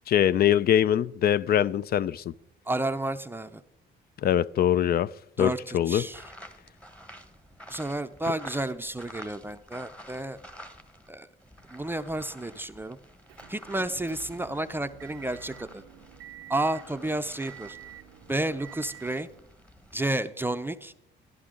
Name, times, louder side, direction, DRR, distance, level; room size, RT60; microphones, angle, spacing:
voice 1, 0.1-2.3 4.2-5.1 5.4-6.1, left 10 dB, 50° left, 0.4 m, -23 dB
voice 2, 2.7-3.6 5.4-6.2 7.7-10.4 11.1-11.3 11.7-13.0 13.5-15.8 16.5-17.8 18.3-19.3 19.9-20.9, right 1 dB, 10° right, 0.5 m, -31 dB
sound 1, 6.1-11.1 11.4-20.0, equal, 5° left, 1.2 m, -49 dB
Motor vehicle (road) / Engine, 13.3-19.4, right 13 dB, 90° right, 0.5 m, -48 dB
13.5 x 11.0 x 3.7 m
cardioid pair, 90°, 20 cm